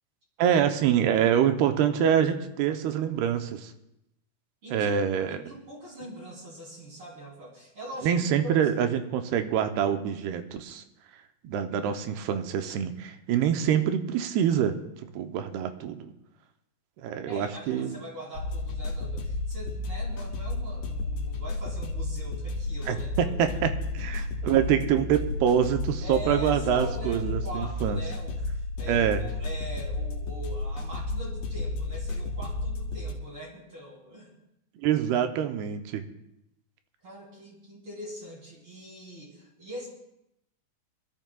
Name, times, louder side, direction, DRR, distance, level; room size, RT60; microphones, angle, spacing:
voice 1, 0.4-3.7 4.7-5.4 8.0-10.8 11.4-14.8 15.1-16.1 17.0-18.0 22.9-28.0 28.9-29.2 34.8-36.0, right 9 dB, 80° right, 7 dB, 2.8 m, -25 dB
voice 2, 5.3-8.5 17.3-23.3 24.0-24.6 26.0-34.3 37.0-39.9, right 1 dB, 35° right, -3 dB, 3.8 m, -42 dB
sound 1, 18.4-33.1, left 2 dB, 90° left, 3.4 m, -32 dB
25.0 x 12.5 x 2.3 m, 0.84 s
omnidirectional pair, 4.6 m